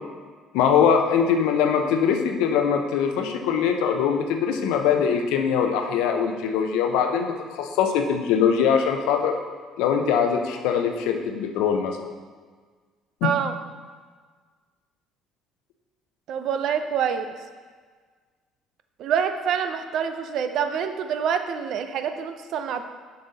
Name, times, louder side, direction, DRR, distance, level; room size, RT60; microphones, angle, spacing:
voice 1, 0.5-9.4 9.8-12.0 13.2-13.3, left 7 dB, 75° left, 5 dB, 0.7 m, -22 dB
voice 2, 13.2-13.6 16.3-17.3 19.0-22.8, right 7 dB, 65° right, 8 dB, 0.5 m, -26 dB
6.7 x 5.4 x 4.2 m, 1.5 s
hypercardioid pair, 65°, 0 cm